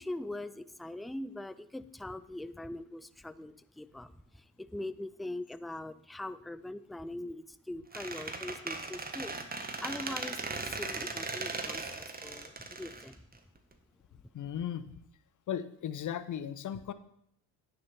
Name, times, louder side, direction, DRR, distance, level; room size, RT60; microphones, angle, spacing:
voice 1, 0.0-13.2, left 1 dB, ahead, 15 dB, 0.3 m, -42 dB
Squeak, 7.9-13.7, right 3 dB, 20° right, 1.5 m, -38 dB
voice 2, 14.3-14.9 15.5-16.9, left 9 dB, 45° left, 14 dB, 0.9 m, -36 dB
9.5 x 6.8 x 5.9 m, 0.69 s
hypercardioid pair, 60°, 43 cm